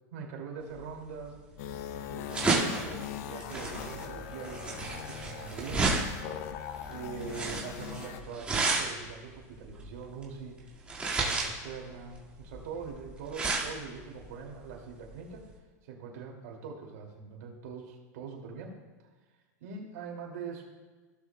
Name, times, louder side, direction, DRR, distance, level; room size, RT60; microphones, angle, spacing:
voice 1, 0.1-1.4 2.1-6.0 6.9-10.8 11.1-15.5 15.8-18.7 19.6-20.6, right 5 dB, 65° right, 0 dB, 2.4 m, -43 dB
sound 1, 0.8-15.5, right 3 dB, 15° right, 1.9 m, -33 dB
sound 2, 1.6-8.2, left 10 dB, 60° left, 0.6 m, -41 dB
16.5 x 6.9 x 2.2 m, 1.3 s
supercardioid pair, 135°, 9 cm